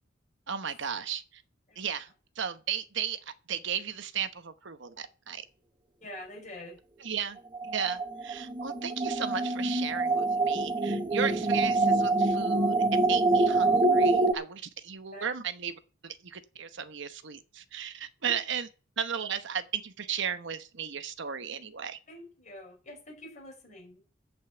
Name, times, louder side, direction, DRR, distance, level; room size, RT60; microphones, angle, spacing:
voice 1, 0.5-1.4 1.8-2.1 2.4-5.4 7.0-7.4 7.6-15.7 16.0-18.7 19.0-22.0, right 7 dB, 65° right, 1.0 m, -35 dB
voice 2, 6.0-6.8 15.1-15.2 18.2-18.3 22.1-24.0, left 1 dB, 40° left, 5.6 m, -45 dB
sound 1, 7.5-14.3, right 2 dB, 25° right, 1.2 m, -26 dB
14.5 x 5.5 x 7.8 m
head